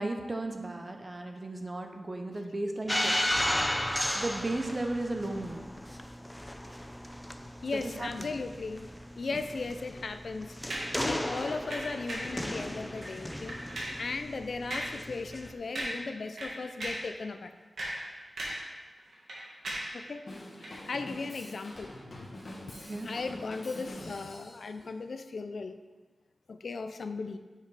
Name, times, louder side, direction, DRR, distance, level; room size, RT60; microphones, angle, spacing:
voice 1, 0.0-3.3 4.1-5.6 7.7-8.3 22.8-23.1, right 2 dB, 30° right, 4 dB, 0.7 m, -35 dB
sound 1, 2.9-15.5, equal, 5° left, 0.4 m, -35 dB
voice 2, 7.6-8.9 9.2-13.6 14.0-17.5 19.9-20.2 20.6-21.9 23.0-25.8 26.5-27.4, left 4 dB, 70° left, 9 dB, 0.4 m, -37 dB
sound 2, 10.7-11.0 11.7-12.4 12.9-13.2 13.5-14.0 14.7-15.0 15.3-15.4 15.8-16.1 16.4-17.1 17.6-18.7 19.0-20.0 20.6-20.8, right 1 dB, 85° right, 1.7 m, -37 dB
Drum kit / Drum, 20.3-24.7, left 1 dB, 50° left, 1.7 m, -45 dB
7.2 x 5.0 x 4.0 m, 1.3 s
wide cardioid pair, 100°, 0 cm